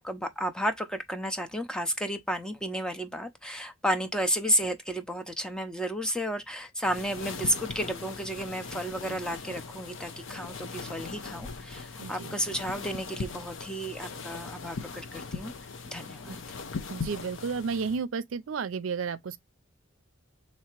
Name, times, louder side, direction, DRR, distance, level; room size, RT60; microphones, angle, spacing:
voice 1, 0.0-15.5 15.8-16.4, equal, 5° left, 0.5 m, -32 dB
sound 1, 6.8-18.0, left 4 dB, 65° left, 0.7 m, -40 dB
voice 2, 12.0-12.3 16.3-16.4 16.9-19.4, right 5 dB, 70° right, 0.5 m, -32 dB
3.3 x 2.8 x 4.3 m
head